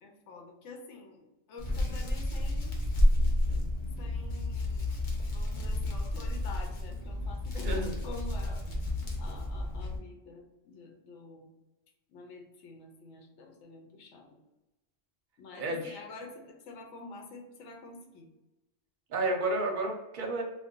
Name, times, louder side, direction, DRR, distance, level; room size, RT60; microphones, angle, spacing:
voice 1, 0.0-2.8 4.0-5.0 5.3-11.5 12.1-14.4 15.4-18.3, left 3 dB, 85° left, 2 dB, 0.9 m, -48 dB
Hands, 1.6-10.0, left 1 dB, 50° left, 0.7 m, -30 dB
voice 2, 15.6-16.0 19.1-20.4, right 2 dB, 50° right, 1 dB, 0.7 m, -31 dB
2.5 x 2.2 x 3.5 m, 1.0 s
omnidirectional pair, 1.2 m